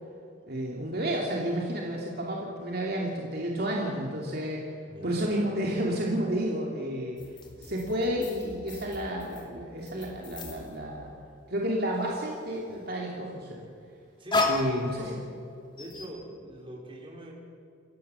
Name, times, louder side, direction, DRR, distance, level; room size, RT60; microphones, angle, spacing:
voice 1, 0.5-4.7 5.0-7.2 7.6-11.1 11.5-13.6 14.4-15.1, equal, 50° right, -2 dB, 2.8 m, -31 dB
voice 2, 4.9-5.3 14.2-15.2 15.7-17.3, equal, 25° right, -1 dB, 4.5 m, -43 dB
sound 1, 7.2-11.4 11.7-12.9 13.7-15.4 15.8-16.1, left 3 dB, 25° left, 2.7 m, -35 dB
28.5 x 14.5 x 7.0 m, 2.4 s
head